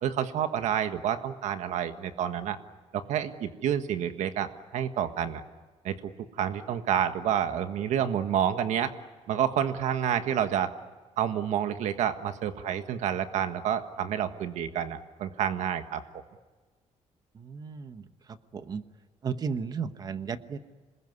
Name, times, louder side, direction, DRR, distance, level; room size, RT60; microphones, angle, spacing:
voice 1, 0.0-2.6 2.9-5.4 5.8-6.1 6.4-8.9 9.3-10.7 11.2-16.0, right 9 dB, 85° right, 9 dB, 1.6 m, -29 dB
voice 2, 17.4-18.0 18.5-18.8 19.2-20.6, right 6 dB, 35° right, 11 dB, 1.1 m, -34 dB
27.0 x 21.0 x 9.6 m, 1.4 s
cardioid pair, 175°, 12 cm